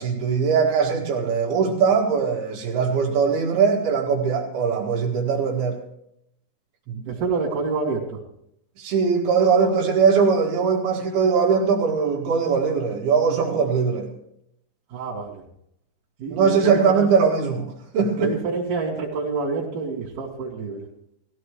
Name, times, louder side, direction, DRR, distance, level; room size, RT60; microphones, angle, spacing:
voice 1, 0.0-5.8 6.9-7.0 8.8-14.1 16.3-17.7 17.9-18.3, right 5 dB, 80° right, -1 dB, 3.8 m, -21 dB
voice 2, 7.1-8.2 14.9-15.4 16.2-17.1 18.2-20.8, right 4 dB, 55° right, -7 dB, 3.7 m, -27 dB
18.5 x 15.5 x 3.3 m, 0.75 s
omnidirectional pair, 4.4 m